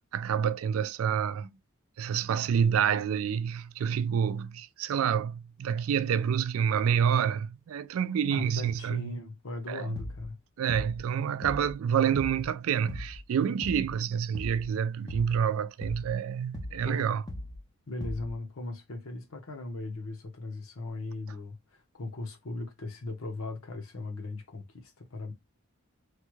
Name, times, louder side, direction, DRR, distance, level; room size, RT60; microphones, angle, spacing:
voice 1, 0.1-1.5 2.0-9.1 9.7-10.0 10.6-17.2, right 8 dB, 75° right, 0.3 m, -28 dB
voice 2, 8.3-10.3 11.2-11.4 16.8-17.0 17.9-25.3, left 2 dB, 75° left, 1.0 m, -38 dB
sound 1, 10.0-10.3 10.7-11.1 11.4-11.8 12.2-12.5 12.9-13.3 13.6-14.0 14.3-14.7 15.1-15.5 15.8-16.2 16.5-16.9 17.3-17.6 18.0-18.4, left 1 dB, 20° left, 0.5 m, -39 dB
3.2 x 2.3 x 3.0 m
head